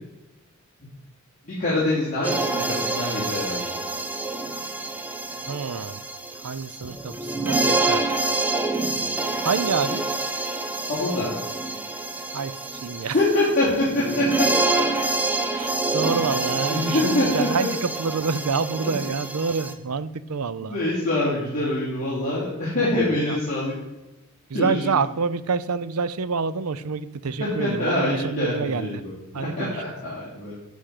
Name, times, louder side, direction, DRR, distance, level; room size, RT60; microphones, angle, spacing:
voice 1, 1.4-3.6 10.9-11.3 13.0-14.4 16.7-17.5 18.8-18.9 20.7-23.7 24.5-25.0 27.4-30.5, left 2 dB, 35° left, -9 dB, 3.2 m, -25 dB
sound 1, 2.2-19.7, right 3 dB, 10° right, 0.7 m, -27 dB
voice 2, 5.5-6.0 6.4-8.1 9.4-10.0 12.3-12.5 12.8-13.2 15.5-20.8 23.2-23.4 24.5-29.0 29.3-29.7, right 5 dB, 90° right, 16 dB, 0.6 m, -27 dB
11.5 x 5.2 x 6.6 m, 1.0 s
head